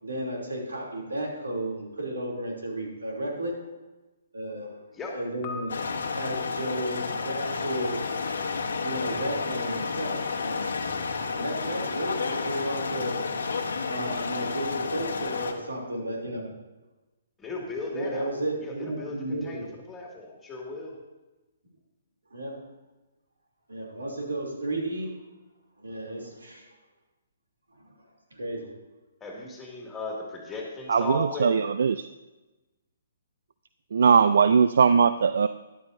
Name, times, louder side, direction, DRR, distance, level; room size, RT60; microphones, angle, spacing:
voice 1, 0.0-3.6 4.3-4.7 5.1-5.7 6.1-8.2 8.8-10.7 11.3-13.3 13.9-16.5 17.9-19.7 22.3-22.6 23.7-25.1 25.8-26.7 27.8-27.9 28.3-28.7, right 1 dB, 85° right, -1 dB, 2.9 m, -33 dB
Piano, 5.4-8.3, left 3 dB, 30° left, 1.6 m, -45 dB
sound 1, 5.7-15.5, left 4 dB, 70° left, 1.1 m, -31 dB
voice 2, 17.4-18.3 18.6-20.9 29.2-31.6, left 3 dB, 15° left, -1 dB, 2.2 m, -37 dB
voice 3, 30.9-32.0 33.9-35.5, right 6 dB, 65° right, 13 dB, 0.3 m, -20 dB
13.0 x 10.5 x 2.7 m, 1.1 s
figure-of-eight pair, 135°, 0 cm